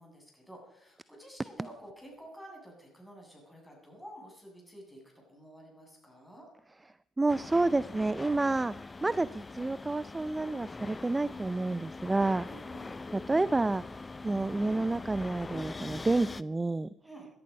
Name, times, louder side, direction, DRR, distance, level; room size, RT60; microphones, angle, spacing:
voice 1, 0.0-6.5 12.5-13.1 17.0-17.3, right 1 dB, 5° left, 0 dB, 7.7 m, -51 dB
voice 2, 7.2-8.7 9.0-12.5 13.1-13.8 14.2-16.9, right 2 dB, 20° right, 17 dB, 0.4 m, -29 dB
sound 1, 7.3-16.4, left 3 dB, 25° left, 0.6 m, -43 dB
17.5 x 12.0 x 5.4 m, 0.76 s
supercardioid pair, 65°, 0 cm